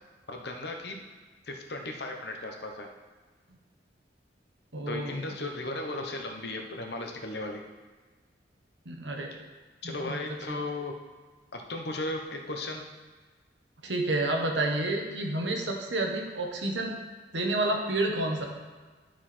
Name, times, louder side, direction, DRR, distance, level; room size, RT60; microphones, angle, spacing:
voice 1, 0.3-0.9 1.5-2.9 4.9-7.6 9.8-10.9 11.5-12.8, left 2 dB, 65° left, 3 dB, 1.1 m, -36 dB
voice 2, 4.7-5.3 8.8-9.3 9.8-10.2 10.5-10.6 13.8-16.9 17.3-18.5, right 2 dB, 85° right, 2 dB, 1.3 m, -30 dB
11.5 x 4.7 x 4.4 m, 1.4 s
head